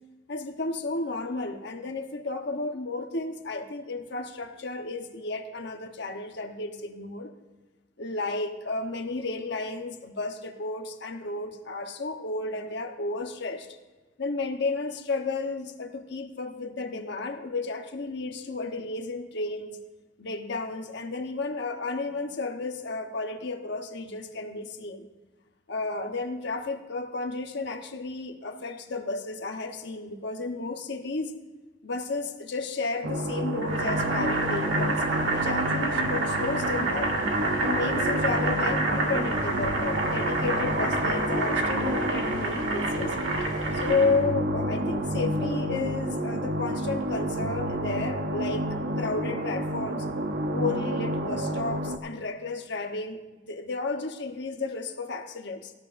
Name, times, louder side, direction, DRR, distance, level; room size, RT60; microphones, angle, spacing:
voice 1, 0.3-7.3 8.0-13.7 14.2-19.8 20.2-25.1 25.7-31.3 31.8-37.2 37.6-43.1 43.7-48.7 49.0-50.1 50.5-53.2 53.5-55.7, left 3 dB, 65° left, 5 dB, 1.1 m, -32 dB
sound 1, 33.0-52.0, right 1 dB, 60° right, 0.7 m, -30 dB
Boiling, 33.6-44.3, right 2 dB, 85° right, 1.9 m, -29 dB
17.0 x 13.5 x 2.6 m, 1.2 s
head